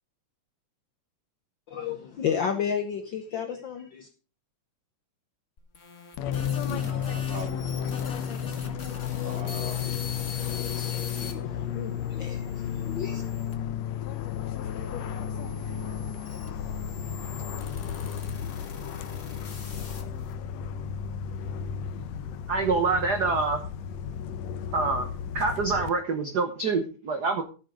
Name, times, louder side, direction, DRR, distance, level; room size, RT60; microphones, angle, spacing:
voice 1, 1.7-4.1 10.6-13.2, left 7 dB, 90° left, 1.0 m, -33 dB
sound 1, 5.6-11.3 12.0-13.5 14.3-20.3, left 4 dB, 30° left, 1.5 m, -44 dB
Fixed-wing aircraft airplane, 6.2-25.9, left 8 dB, 70° left, 1.8 m, -33 dB
voice 2, 6.7-7.9 9.2-10.4, right 1 dB, 35° right, 3.9 m, -40 dB
voice 3, 22.5-23.6 24.7-25.1 25.3-27.4, right 4 dB, 65° right, 1.0 m, -26 dB
14.0 x 7.5 x 4.9 m
omnidirectional pair, 3.5 m